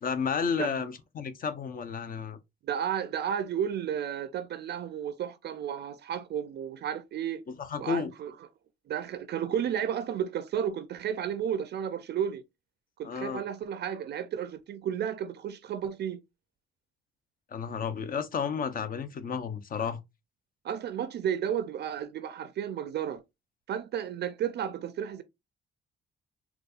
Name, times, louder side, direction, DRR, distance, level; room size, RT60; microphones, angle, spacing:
voice 1, 0.0-2.4 7.5-8.1 13.0-13.4 17.5-20.0, left 6 dB, 45° left, 0.6 m, -32 dB
voice 2, 2.6-7.4 7.8-8.3 8.9-12.4 13.0-16.2 20.6-23.2 23.7-25.2, right 9 dB, 55° right, 0.4 m, -32 dB
4.0 x 2.3 x 2.4 m
cardioid pair, 90°, 20 cm